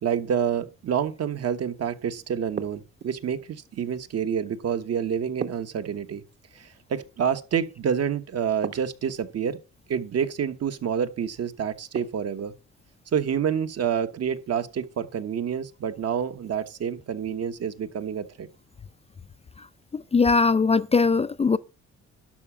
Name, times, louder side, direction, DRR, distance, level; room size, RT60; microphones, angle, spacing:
voice 1, 0.0-6.2 6.5-9.6 9.9-12.5 13.1-18.5, right 7 dB, 55° right, 1.3 m, -28 dB
sound 1, 2.6-3.3 5.4-6.4 8.6-9.4 11.9-12.6, right 6 dB, 35° right, 1.1 m, -37 dB
voice 2, 19.9-21.6, left 4 dB, 20° left, 0.4 m, -20 dB
12.0 x 4.9 x 7.2 m
cardioid pair, 90°, 30 cm